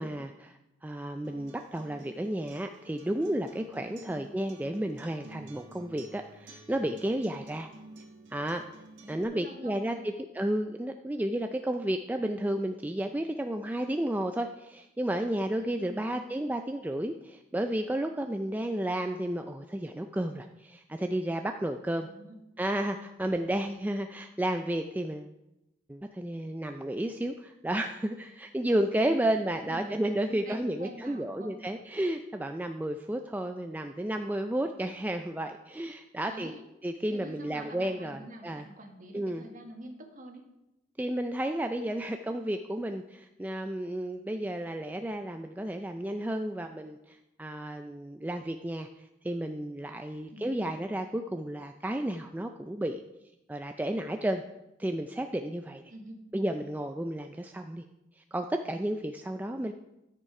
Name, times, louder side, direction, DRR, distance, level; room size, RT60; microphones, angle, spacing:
voice 1, 0.0-7.7 8.3-8.7 9.1-22.1 22.6-25.3 25.9-36.5 36.8-38.7 39.1-39.4 41.0-53.0 53.5-54.4 54.8-55.8 56.3-57.8 58.2-59.7, right 1 dB, 10° right, 5 dB, 0.3 m, -32 dB
Acoustic guitar, 1.2-9.2, right 2 dB, 70° right, 1.5 m, -51 dB
voice 2, 4.0-4.4 9.0-10.0 15.8-16.3 22.0-22.4 28.8-31.5 36.2-36.6 37.1-40.4 50.3-50.9 55.9-56.3, right 1 dB, 45° right, 3 dB, 1.6 m, -46 dB
12.0 x 6.8 x 4.8 m, 0.93 s
head